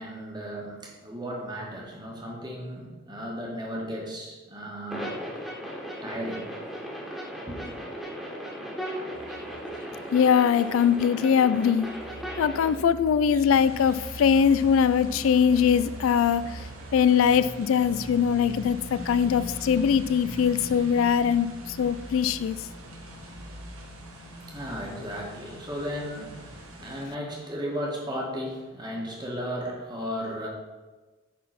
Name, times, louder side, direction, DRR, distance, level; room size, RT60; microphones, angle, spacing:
voice 1, 0.0-5.2 6.0-6.5 7.5-7.7 24.4-30.5, equal, 20° right, -1 dB, 1.6 m, -35 dB
sound 1, 4.9-12.7, equal, ahead, 1.7 m, -37 dB
sound 2, 9.1-18.4, right 4 dB, 40° right, 0.5 m, -44 dB
voice 2, 10.1-11.9 12.4-22.6, left 7 dB, 70° left, 15 dB, 0.3 m, -22 dB
sound 3, 13.5-27.1, equal, 85° right, 1.5 m, -42 dB
9.3 x 4.2 x 5.8 m, 1.3 s
head